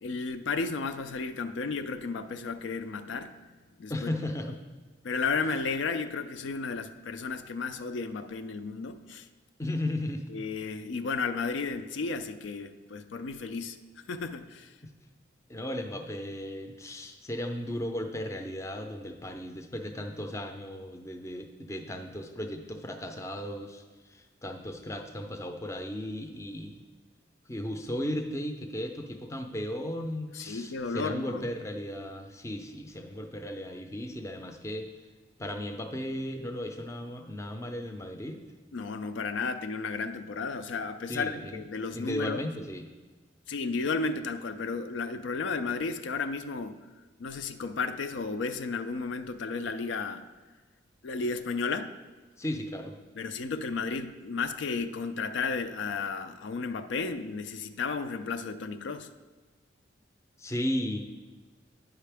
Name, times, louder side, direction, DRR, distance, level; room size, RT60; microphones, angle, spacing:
voice 1, 0.0-4.1 5.0-9.3 10.3-13.8 14.1-14.7 30.3-31.4 38.7-42.4 43.5-46.8 47.2-50.2 51.0-51.9 53.2-59.1, left 4 dB, 75° left, 9 dB, 0.4 m, -33 dB
voice 2, 3.9-4.6 9.6-10.3 15.5-26.8 27.5-34.9 35.4-38.4 41.1-41.6 41.9-42.9 52.4-53.0 60.4-61.0, left 1 dB, 15° left, 5 dB, 0.5 m, -35 dB
9.2 x 5.7 x 3.4 m, 1.4 s
head